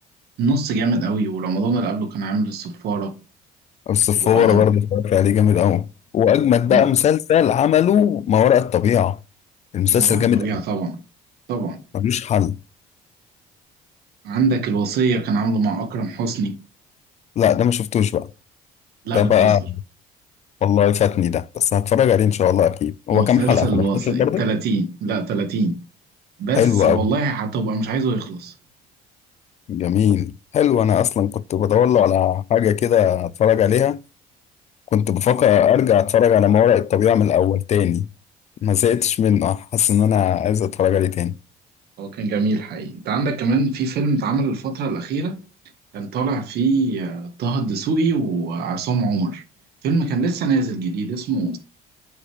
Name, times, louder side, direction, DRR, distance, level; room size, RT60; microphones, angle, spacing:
voice 1, 0.4-3.1 4.2-4.6 6.7-6.9 9.9-11.0 11.5-11.8 14.2-16.6 19.0-19.6 23.1-25.8 26.4-28.5 42.0-45.4 45.9-49.4 49.8-51.6, right 3 dB, 70° right, 1.6 m, -23 dB
voice 2, 3.9-5.9 6.1-9.2 9.7-10.5 11.9-12.5 17.4-18.3 19.1-19.6 20.6-24.4 26.5-27.0 29.7-34.0 34.9-38.1 38.6-41.4, left 9 dB, 40° left, 0.4 m, -18 dB
8.2 x 5.1 x 3.3 m
cardioid pair, 110°, 17 cm